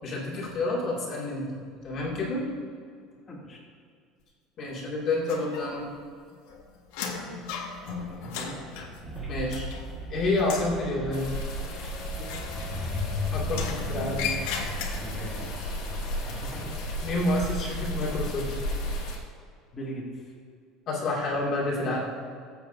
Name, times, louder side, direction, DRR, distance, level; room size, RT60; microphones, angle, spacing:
voice 1, 0.0-2.5 4.6-5.8 9.3-9.7 10.1-11.3 13.3-14.3 17.0-18.5 20.9-22.0, left 2 dB, 35° left, -4 dB, 2.6 m, -29 dB
voice 2, 3.3-3.6 7.8-8.6 12.2-12.4 15.0-15.5 16.2-16.7 19.7-20.3, right 1 dB, 15° left, -5 dB, 2.6 m, -40 dB
sound 1, 5.3-6.0 6.3-10.1 10.4-10.8 12.2-13.1 13.5-15.3, left 6 dB, 90° left, 1.7 m, -37 dB
sound 2, 9.0-19.0, equal, 15° right, 1.9 m, -37 dB
sound 3, 11.1-19.2, left 1 dB, 55° left, 2.3 m, -34 dB
19.5 x 8.1 x 2.8 m, 2.2 s
cardioid pair, 175°, 0 cm